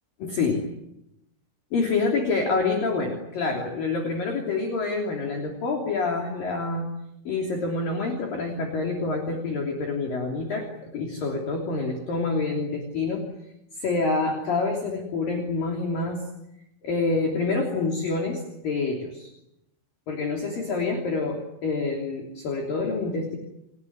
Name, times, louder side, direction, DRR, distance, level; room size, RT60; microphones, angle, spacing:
voice 1, 0.2-0.6 1.7-6.9 7.3-13.3 13.8-16.2 16.8-19.3 20.1-23.4, left 3 dB, 50° left, 1 dB, 4.5 m, -27 dB
29.5 x 19.0 x 9.6 m, 0.86 s
omnidirectional pair, 5.6 m